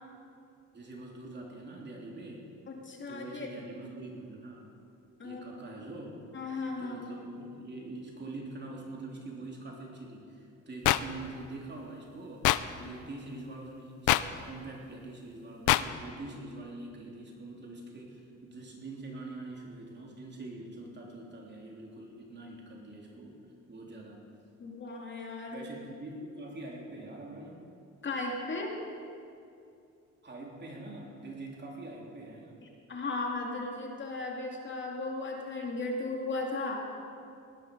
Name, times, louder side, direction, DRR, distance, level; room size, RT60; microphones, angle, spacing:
voice 1, 0.7-2.5 3.1-4.7 5.2-6.2 6.8-12.5 12.8-23.4 23.7-24.2 25.5-27.6 30.2-32.6, right 2 dB, 35° right, -1 dB, 3.3 m, -44 dB
voice 2, 2.7-3.5 5.2-5.4 6.3-7.0 12.8-12.9 24.6-25.7 28.0-28.8 32.6-36.8, left 3 dB, 40° left, 0 dB, 2.5 m, -36 dB
sound 1, 10.8-11.0 12.4-12.6 14.1-14.2 15.7-15.8, left 17 dB, 85° left, 0.5 m, -22 dB
19.0 x 10.5 x 5.4 m, 2.5 s
cardioid pair, 90°, 30 cm